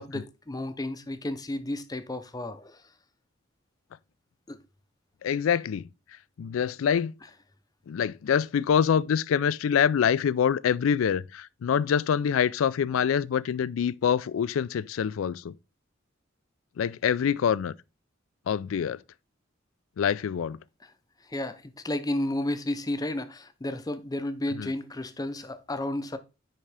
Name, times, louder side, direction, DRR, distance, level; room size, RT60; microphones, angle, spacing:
voice 1, 0.0-2.8 4.5-4.6 21.3-26.2, left 1 dB, 20° left, 0.6 m, -32 dB
voice 2, 5.2-5.9 6.4-7.1 7.9-15.5 16.8-17.7 18.5-19.0 20.0-20.6 24.6-24.7, left 7 dB, 90° left, 0.3 m, -25 dB
9.8 x 3.7 x 3.3 m
head